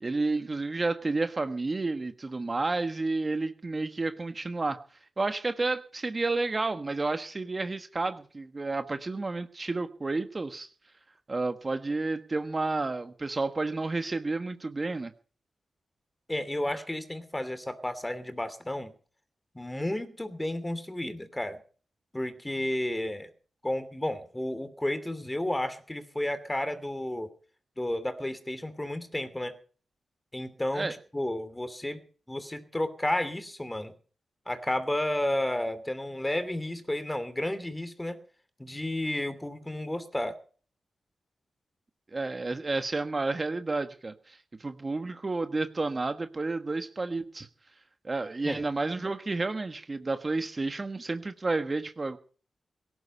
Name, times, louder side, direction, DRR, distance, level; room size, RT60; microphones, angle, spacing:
voice 1, 0.0-4.8 5.2-10.7 11.3-15.1 30.7-30.9 42.1-47.5 48.0-52.2, right 3 dB, 40° right, 9 dB, 1.4 m, -31 dB
voice 2, 16.3-18.9 19.5-21.6 22.1-23.3 23.6-27.3 27.8-29.6 30.3-30.9 31.1-32.0 32.3-33.9 34.5-38.2 38.6-40.4 48.4-48.6, left 1 dB, 15° left, 11 dB, 2.9 m, -32 dB
17.5 x 11.5 x 5.5 m, 0.42 s
supercardioid pair, 45°, 0 cm